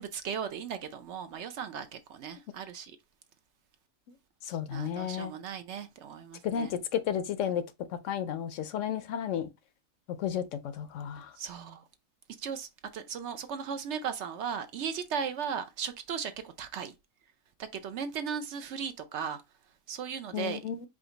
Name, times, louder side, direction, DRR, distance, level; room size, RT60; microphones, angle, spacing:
voice 1, 0.0-2.9 4.7-6.7 11.4-11.8 12.4-16.9 17.7-19.4 19.9-20.6, right 7 dB, 65° right, 0.8 m, -37 dB
voice 2, 4.5-5.3 6.4-7.6 8.0-9.5 10.2-10.4 10.8-11.3 20.3-20.8, left 9 dB, 70° left, 0.9 m, -32 dB
5.0 x 2.3 x 3.9 m
omnidirectional pair, 1.4 m